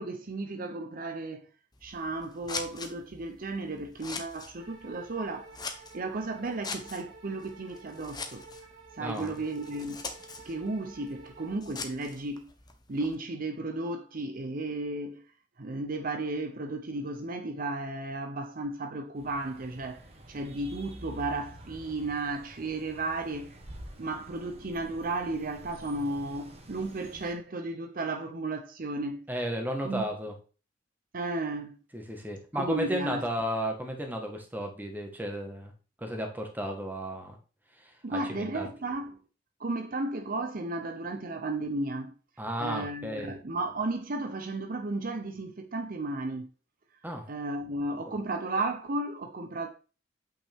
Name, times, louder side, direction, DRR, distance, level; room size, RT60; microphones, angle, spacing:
voice 1, 0.0-1.5 1.8-5.5 5.9-8.4 8.9-10.1 10.4-12.5 12.9-15.2 15.6-23.6 24.0-29.3 29.8-30.0 31.1-31.8 32.5-33.2 38.0-39.2 39.6-42.1 42.6-46.5 47.3-49.7, right 2 dB, 50° right, 0.7 m, -34 dB
Scissors, 1.7-13.2, left 4 dB, 25° left, 1.0 m, -44 dB
sound 1, 4.6-11.6, right 3 dB, 80° right, 2.7 m, -51 dB
voice 2, 9.0-9.4 29.3-30.3 31.9-35.7 36.0-37.3 37.8-38.7 42.4-43.3 47.0-47.2 48.1-48.2, equal, 10° right, 1.5 m, -34 dB
sound 2, 19.2-27.3, equal, 35° right, 1.3 m, -48 dB
8.4 x 5.8 x 3.5 m
head